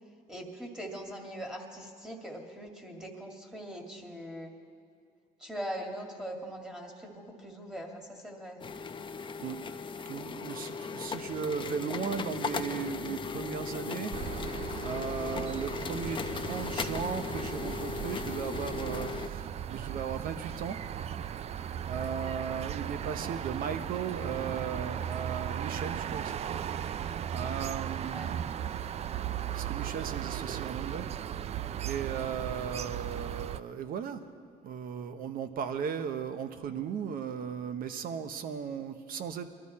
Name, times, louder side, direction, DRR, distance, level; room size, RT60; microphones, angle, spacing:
voice 1, 0.3-4.5 5.4-8.6 28.1-28.3, equal, 5° right, 1 dB, 2.3 m, -41 dB
sound 1, 8.6-19.3, left 5 dB, 30° left, 0.7 m, -37 dB
voice 2, 10.0-14.1 14.8-20.8 21.8-26.6 27.3-28.5 29.0-31.2 31.8-34.2 34.6-39.5, right 7 dB, 60° right, 9 dB, 1.0 m, -37 dB
sound 2, 14.1-33.6, right 9 dB, 40° right, 0.4 m, -37 dB
22.5 x 13.0 x 4.3 m, 2.3 s
cardioid pair, 110°, 17 cm